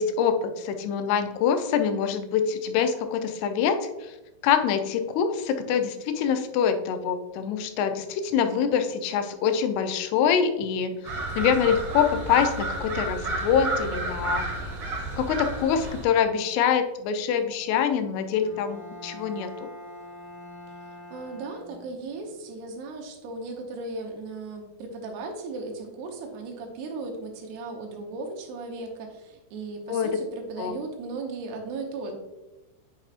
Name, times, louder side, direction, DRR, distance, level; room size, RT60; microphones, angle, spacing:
voice 1, 0.0-4.2 4.4-14.5 15.2-19.7 29.9-30.2 30.6-30.7, left 7 dB, 85° left, 7 dB, 2.6 m, -25 dB
sound 1, 11.0-16.0, right 2 dB, 65° right, 1.3 m, -31 dB
Bowed string instrument, 18.4-22.2, equal, 60° left, 4.2 m, -43 dB
voice 2, 20.7-32.1, right 3 dB, 85° right, 2 dB, 3.0 m, -36 dB
8.7 x 5.6 x 2.5 m, 1.1 s
omnidirectional pair, 4.6 m